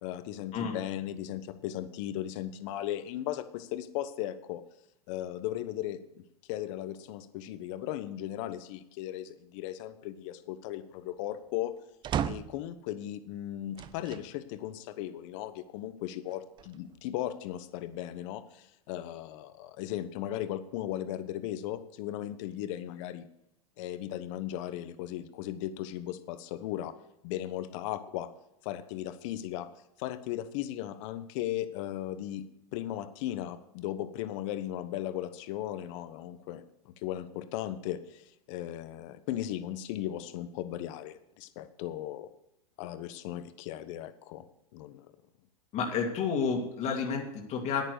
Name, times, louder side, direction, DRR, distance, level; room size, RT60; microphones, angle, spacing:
voice 1, 0.0-4.6 5.1-6.2 6.5-11.7 12.2-23.3 23.8-26.9 27.2-28.3 28.6-29.7 30.0-32.4 32.7-42.3 42.8-44.5 44.7-45.1, left 12 dB, 55° left, 11 dB, 1.2 m, -37 dB
sound 1, 12.0-12.7 13.7-14.3 14.9-15.0 16.3-17.1, right 9 dB, 25° right, 0.5 m, -35 dB
voice 2, 45.7-47.8, left 5 dB, 35° left, 1 dB, 2.2 m, -30 dB
9.9 x 9.3 x 6.7 m, 0.82 s
hypercardioid pair, 120°, 19 cm